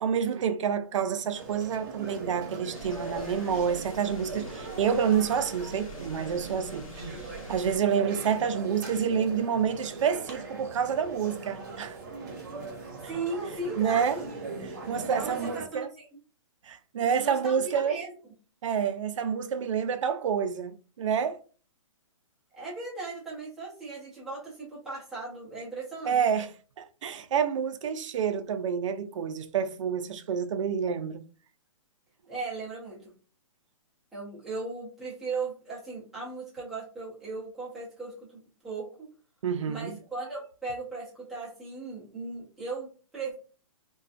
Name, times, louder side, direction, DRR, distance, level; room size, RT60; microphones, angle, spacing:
voice 1, 0.0-7.1 7.5-12.0 13.8-14.2 14.7-15.9 16.6-18.0 18.6-21.4 26.0-31.2 39.4-40.0, right 7 dB, 60° right, 0.4 m, -28 dB
sound 1, 1.3-15.6, right 3 dB, 35° right, 0.7 m, -40 dB
sound 2, 2.7-7.8, left 1 dB, 75° left, 0.8 m, -46 dB
voice 2, 12.8-14.3 15.0-16.1 17.0-18.1 22.5-26.2 32.3-33.1 34.1-38.1 38.6-39.1 39.7-43.3, right 3 dB, ahead, 0.4 m, -37 dB
2.4 x 2.2 x 2.4 m
hypercardioid pair, 175°, 18 cm